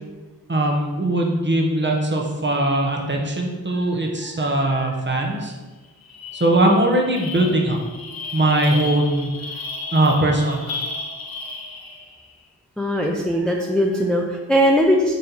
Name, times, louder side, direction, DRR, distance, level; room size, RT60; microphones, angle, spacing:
voice 1, 0.5-5.5 6.3-7.8 8.3-9.3 9.9-10.8, right 1 dB, 30° right, 0 dB, 0.8 m, -20 dB
voice 2, 4.2-4.9 12.8-15.1, equal, ahead, 0 dB, 0.4 m, -20 dB
sound 1, 5.4-5.5 5.8-12.3, left 3 dB, 65° left, 0.7 m, -34 dB
4.1 x 2.8 x 3.8 m, 1.2 s
wide cardioid pair, 45°, 39 cm